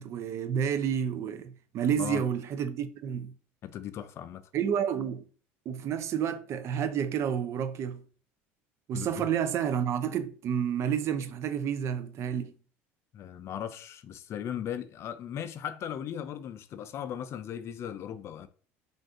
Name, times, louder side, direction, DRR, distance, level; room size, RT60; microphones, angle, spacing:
voice 1, 0.0-3.3 4.5-5.3 5.7-8.0 8.9-12.5, right 8 dB, 45° right, 0.4 m, -30 dB
voice 2, 3.6-4.5 8.9-9.3 13.1-18.5, left 9 dB, 45° left, 0.3 m, -37 dB
2.5 x 2.4 x 3.5 m
supercardioid pair, 105°, 6 cm